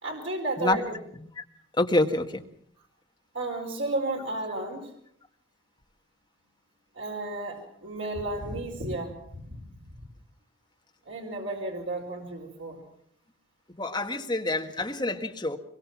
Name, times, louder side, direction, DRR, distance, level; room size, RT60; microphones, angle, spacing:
voice 1, 0.0-1.0 3.3-4.9 6.9-9.1 9.4-9.5 11.0-12.8, right 2 dB, 80° right, 0 dB, 4.8 m, -32 dB
voice 2, 1.8-2.4 13.8-15.6, left 2 dB, 20° left, 3 dB, 1.7 m, -26 dB
24.0 x 22.0 x 6.1 m, 0.69 s
head